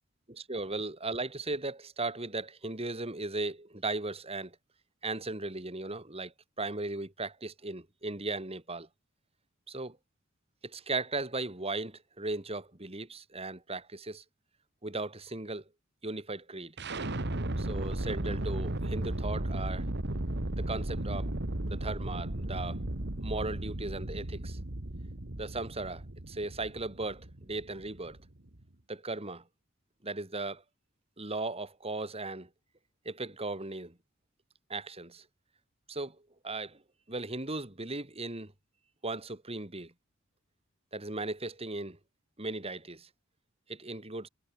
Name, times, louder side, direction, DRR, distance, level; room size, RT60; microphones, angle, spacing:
voice 1, 0.3-4.6 5.0-8.9 9.7-10.0 10.6-14.2 14.8-15.6 16.0-16.7 17.6-19.9 20.6-21.3 21.7-22.8 23.2-24.6 25.4-28.2 28.9-29.4 30.0-30.6 31.2-32.5 33.0-34.0 34.7-35.2 35.9-36.2 36.4-36.8 37.1-38.5 39.0-39.9 40.9-42.0 42.4-43.1 43.7-44.3, right 2 dB, 30° right, 3.0 m, -37 dB
sound 1, 16.8-28.6, right 1 dB, 55° right, 2.0 m, -35 dB
head